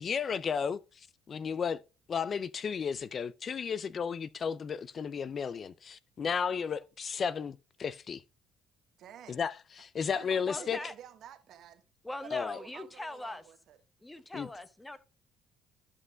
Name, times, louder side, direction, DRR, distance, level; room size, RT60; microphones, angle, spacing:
voice 1, 0.0-1.8 2.1-8.2 9.3-10.8 12.3-12.6 14.3-14.5, left 6 dB, 45° left, 0.4 m, -34 dB
voice 2, 9.0-9.4 10.1-11.8 12.2-13.8, right 10 dB, 65° right, 1.3 m, -51 dB
voice 3, 10.5-10.9 12.0-13.4 14.0-15.0, left 1 dB, 15° left, 1.0 m, -41 dB
13.5 x 5.6 x 2.2 m
supercardioid pair, 75°, 0 cm